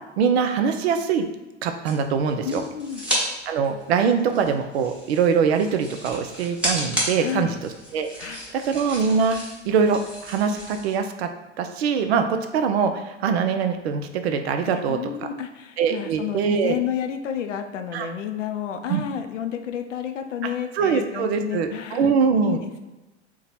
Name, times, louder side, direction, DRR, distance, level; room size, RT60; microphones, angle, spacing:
voice 1, 0.2-1.3 1.6-2.6 3.5-7.5 7.9-9.4 9.7-11.3 11.6-15.0 15.8-16.8 17.9-18.1 18.9-19.0 20.4-22.6, right 6 dB, 60° right, 7 dB, 0.5 m, -23 dB
sound 1, 1.8-3.2 3.6-10.9, equal, 5° right, 1.0 m, -32 dB
voice 2, 2.4-3.0 7.2-7.6 8.2-8.4 14.6-22.1 22.4-22.8, left 9 dB, 80° left, 7 dB, 0.5 m, -30 dB
2.8 x 2.2 x 4.1 m, 1.1 s
figure-of-eight pair, 95°, 36 cm